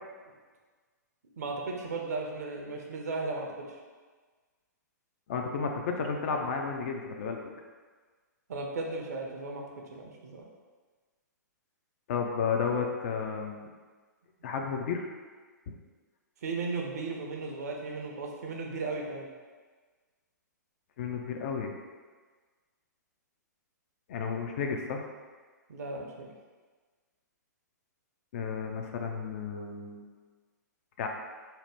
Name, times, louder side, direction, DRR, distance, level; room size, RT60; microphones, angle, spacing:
voice 1, 1.4-3.8 8.5-9.7 9.9-10.4 16.4-19.3 25.7-26.3, right 3 dB, 60° right, 1 dB, 0.5 m, -36 dB
voice 2, 5.3-7.4 12.1-13.7 14.4-15.1 21.0-21.7 24.1-25.0 28.3-30.0 31.0-31.1, left 5 dB, 45° left, 2 dB, 0.4 m, -32 dB
2.8 x 2.1 x 3.3 m, 1.4 s
figure-of-eight pair, 115°, 10 cm